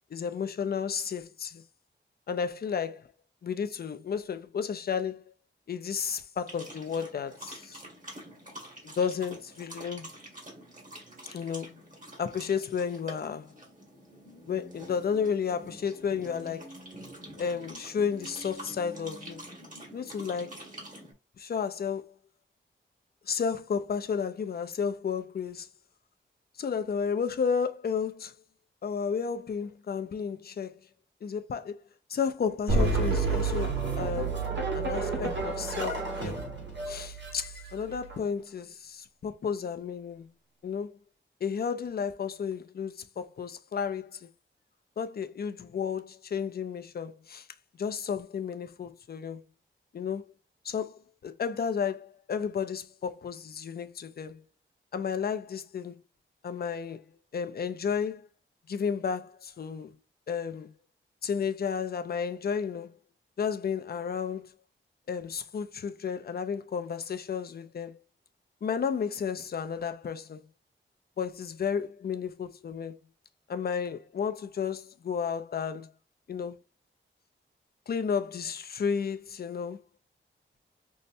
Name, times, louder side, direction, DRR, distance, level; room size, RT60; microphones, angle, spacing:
voice 1, 0.1-1.6 2.3-3.1 3.4-5.3 5.7-7.8 8.8-10.1 11.3-11.8 12.2-13.5 14.5-16.8 17.4-19.5 19.9-20.6 21.4-22.1 23.2-25.7 26.6-28.3 28.8-30.8 31.2-31.8 32.1-34.4 34.7-36.4 36.9-40.3 40.6-41.0 41.4-44.3 45.0-47.5 47.8-49.4 49.9-50.3 50.6-54.4 54.9-56.0 56.4-57.1 57.3-58.3 58.7-60.0 60.3-60.7 61.2-63.0 63.4-64.5 65.1-68.0 68.6-70.5 71.2-73.0 73.5-75.9 76.3-76.6 77.9-79.8, left 6 dB, 50° left, 0.4 m, -32 dB
sound 1, 6.5-21.1, right 1 dB, 40° right, 1.6 m, -46 dB
sound 2, 32.7-38.2, right 3 dB, 60° right, 1.2 m, -30 dB
5.4 x 2.1 x 2.6 m
wide cardioid pair, 100°, 21 cm